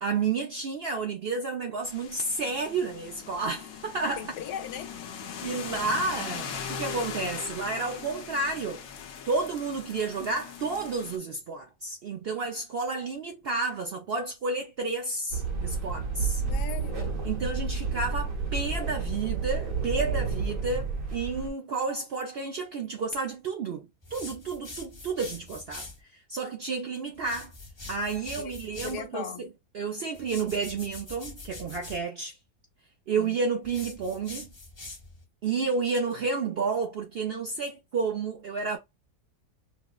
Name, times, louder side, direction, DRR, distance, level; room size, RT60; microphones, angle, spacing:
voice 1, 0.0-4.3 5.4-8.8 9.3-16.4 17.2-27.5 27.9-29.5 29.7-32.4 33.1-34.5 35.4-38.8, right 4 dB, 75° right, 0.5 m, -31 dB
sound 1, 1.8-11.2, left 7 dB, 65° left, 1.1 m, -40 dB
voice 2, 4.2-4.9 16.5-17.2 28.4-28.5 28.8-29.4 33.2-33.4, left 9 dB, 90° left, 1.3 m, -38 dB
sound 2, 15.3-21.5, right 4 dB, 60° right, 1.3 m, -30 dB
sound 3, 24.0-26.0 27.1-29.1 30.1-32.0 33.6-35.2, left 2 dB, 25° left, 0.7 m, -44 dB
5.1 x 2.1 x 2.2 m
omnidirectional pair, 1.7 m